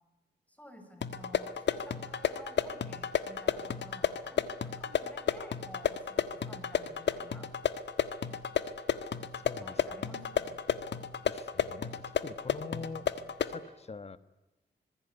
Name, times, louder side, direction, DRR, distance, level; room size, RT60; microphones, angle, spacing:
voice 1, 0.5-4.4 4.8-7.5 9.5-10.6, equal, 10° left, 7 dB, 6.5 m, -53 dB
sound 1, 1.0-13.6, left 8 dB, 85° left, 1.6 m, -33 dB
voice 2, 9.3-9.8 11.3-13.1 13.4-14.2, left 4 dB, 35° left, 14 dB, 1.5 m, -44 dB
26.5 x 22.0 x 9.7 m, 1.0 s
wide cardioid pair, 95°, 18 cm